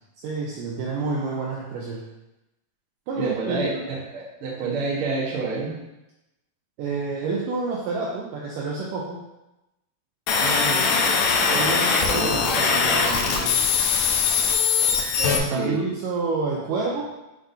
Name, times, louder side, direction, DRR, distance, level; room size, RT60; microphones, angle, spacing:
voice 1, 0.2-2.1 3.1-3.8 6.8-9.2 11.5-13.6 15.2-17.1, right 4 dB, 75° right, -3 dB, 2.0 m, -29 dB
voice 2, 3.1-5.8 10.4-13.2 15.5-15.9, right 3 dB, 55° right, -4 dB, 1.5 m, -30 dB
sound 1, 10.3-15.4, left 5 dB, 90° left, 2.6 m, -21 dB
9.4 x 3.8 x 2.8 m, 0.95 s
omnidirectional pair, 4.3 m